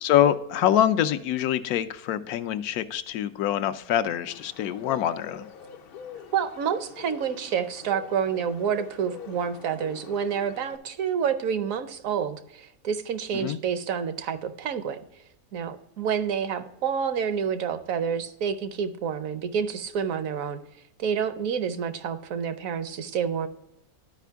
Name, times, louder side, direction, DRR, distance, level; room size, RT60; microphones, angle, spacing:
voice 1, 0.0-5.5 13.3-13.6, left 11 dB, 80° left, 12 dB, 1.0 m, -25 dB
Bird, 4.3-10.8, left 7 dB, 60° left, 0.6 m, -44 dB
voice 2, 6.3-15.0 15.5-20.6 21.0-23.5, right 7 dB, 65° right, 11 dB, 1.0 m, -28 dB
11.5 x 5.0 x 3.4 m, 0.83 s
omnidirectional pair, 1.6 m